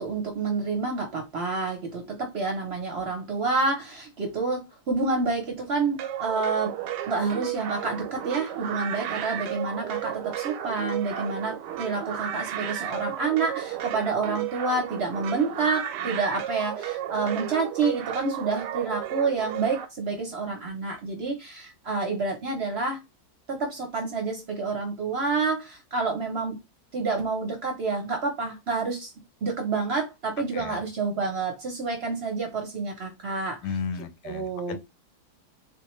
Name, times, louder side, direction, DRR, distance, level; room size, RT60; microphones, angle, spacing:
voice 1, 0.0-6.8 7.1-23.0 23.5-26.6 26.9-29.1 29.4-33.6 34.2-34.8, right 4 dB, 50° right, 0.8 m, -28 dB
sound 1, 6.0-19.9, right 11 dB, 85° right, 1.2 m, -33 dB
voice 2, 33.6-34.8, left 5 dB, 80° left, 1.2 m, -34 dB
3.8 x 2.6 x 3.0 m
omnidirectional pair, 1.8 m